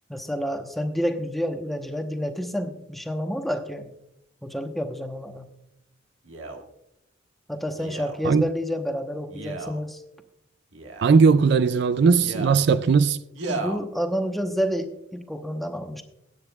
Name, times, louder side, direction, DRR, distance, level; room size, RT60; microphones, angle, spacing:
voice 1, 0.1-3.9 4.4-5.5 7.5-10.0 13.5-16.0, equal, ahead, 0.9 m, -29 dB
Male speech man speaking, 6.2-6.6 7.8-8.2 9.3-9.8 10.7-11.2 12.1-12.6 13.3-13.8 14.5-14.6, right 2 dB, 80° right, 1.5 m, -34 dB
voice 2, 11.0-13.6, right 5 dB, 60° right, 0.4 m, -19 dB
21.0 x 9.6 x 2.3 m
head